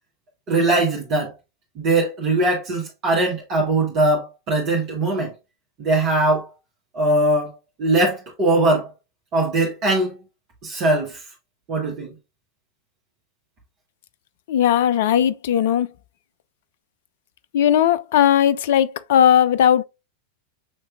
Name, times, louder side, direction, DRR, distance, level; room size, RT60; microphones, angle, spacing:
voice 1, 0.5-1.3 1.7-5.3 5.8-6.4 6.9-7.5 7.8-8.9 9.3-10.2 10.6-11.2 11.7-12.1, right 2 dB, 35° right, 1.5 m, -20 dB
voice 2, 14.5-15.9 17.5-19.8, left 10 dB, 55° left, 0.4 m, -17 dB
6.5 x 3.1 x 2.3 m
figure-of-eight pair, 90°, 0 cm